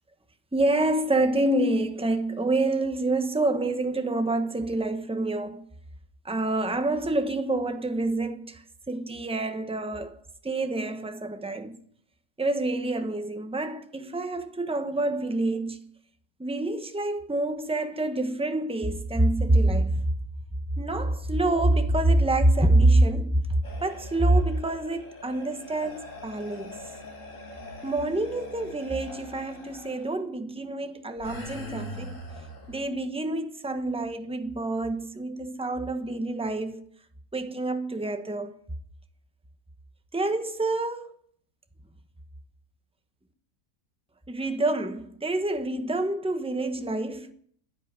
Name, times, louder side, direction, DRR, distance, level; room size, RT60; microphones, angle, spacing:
voice 1, 0.5-5.6 6.2-10.2 10.4-11.8 12.4-15.8 16.4-20.1 20.8-26.8 27.8-32.2 32.7-36.9 37.3-38.5 40.1-41.1 44.3-47.3, right 2 dB, 5° right, 0.9 m, -26 dB
sound 1, 23.6-30.1 31.2-32.8, left 1 dB, 60° left, 3.0 m, -42 dB
13.0 x 11.5 x 10.0 m
omnidirectional pair, 1.6 m